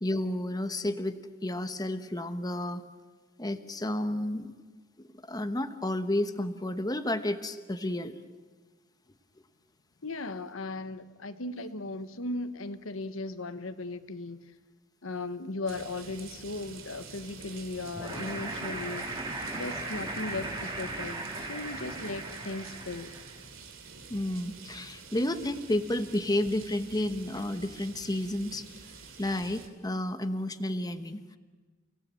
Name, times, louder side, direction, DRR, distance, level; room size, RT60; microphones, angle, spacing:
voice 1, 0.0-2.8 3.4-4.5 5.0-8.1 24.1-28.7 29.2-31.4, left 1 dB, 20° left, 9 dB, 1.1 m, -31 dB
voice 2, 10.0-14.5 15.0-19.1 19.5-23.1, left 2 dB, 80° left, 10 dB, 1.2 m, -37 dB
sound 1, 15.7-29.7, right 4 dB, 70° right, 2.9 m, -48 dB
sound 2, 18.0-23.4, right 2 dB, 20° right, 3.8 m, -37 dB
30.0 x 17.5 x 9.0 m, 1.3 s
head